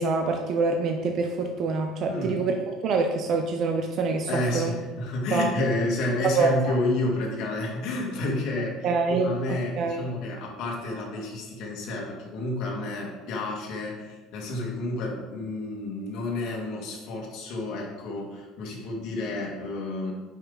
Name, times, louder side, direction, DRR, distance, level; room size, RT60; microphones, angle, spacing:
voice 1, 0.0-2.5 2.8-4.3 4.5-4.7 5.3-5.5 6.3-6.7 8.8-9.3 9.8-10.1, right 4 dB, 40° right, 4 dB, 0.6 m, -25 dB
voice 2, 2.1-2.4 4.3-20.1, left 2 dB, 55° left, -2 dB, 2.1 m, -30 dB
9.2 x 5.7 x 4.0 m, 1.2 s
cardioid pair, 165°, 0 cm